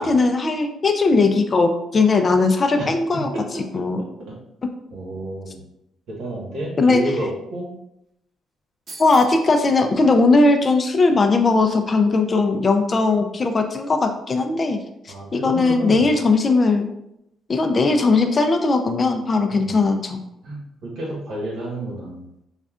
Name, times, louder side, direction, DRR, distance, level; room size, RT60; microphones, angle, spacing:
voice 1, 0.0-3.3 3.7-4.0 6.8-7.0 9.0-14.8 15.3-16.9 17.5-20.2, left 3 dB, 35° left, 6 dB, 0.4 m, -18 dB
voice 2, 2.8-3.6 4.0-4.3 4.9-5.6 6.1-7.7 15.1-16.2 19.5-19.8 20.4-22.2, right 1 dB, 75° right, -3 dB, 1.4 m, -30 dB
sound 1, 8.9-9.5, right 2 dB, 45° right, 0.8 m, -39 dB
5.2 x 2.4 x 2.4 m, 0.81 s
cardioid pair, 90°, 0 cm